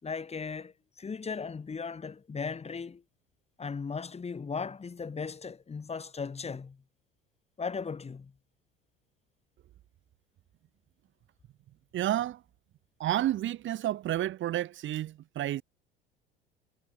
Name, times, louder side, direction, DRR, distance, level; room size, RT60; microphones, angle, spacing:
voice 1, 0.0-3.0 3.6-6.8 7.6-8.3, left 5 dB, 20° left, 7.3 m, -37 dB
voice 2, 11.9-12.4 13.0-15.6, right 13 dB, 40° right, 4.8 m, -30 dB
figure-of-eight pair, 65°, 29 cm